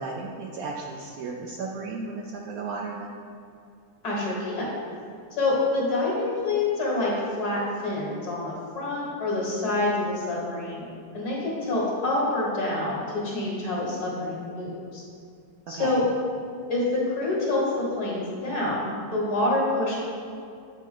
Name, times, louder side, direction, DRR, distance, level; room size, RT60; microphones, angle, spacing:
voice 1, 0.0-3.1 15.7-16.1, right 4 dB, 70° right, -1 dB, 0.9 m, -34 dB
voice 2, 4.0-4.7 5.3-15.0 15.7-16.0 16.7-19.9, left 2 dB, 60° left, -5 dB, 2.1 m, -27 dB
8.3 x 4.3 x 3.7 m, 2.5 s
omnidirectional pair, 1.9 m